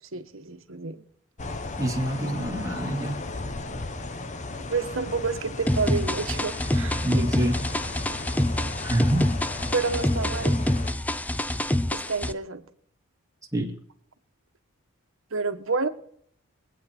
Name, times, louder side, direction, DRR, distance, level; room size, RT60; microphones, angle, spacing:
voice 1, 0.1-1.0 4.5-7.0 9.7-10.6 11.9-12.6 15.3-15.9, right 4 dB, 65° right, 8 dB, 1.3 m, -29 dB
sound 1, 1.4-10.9, left 2 dB, 35° left, 0.9 m, -36 dB
voice 2, 1.8-3.2 7.0-7.7 8.8-9.3 13.5-13.7, right 1 dB, 15° right, 1 dB, 2.3 m, -26 dB
sound 2, 5.7-12.3, left 1 dB, 5° left, 0.5 m, -26 dB
23.5 x 9.4 x 4.4 m, 0.66 s
head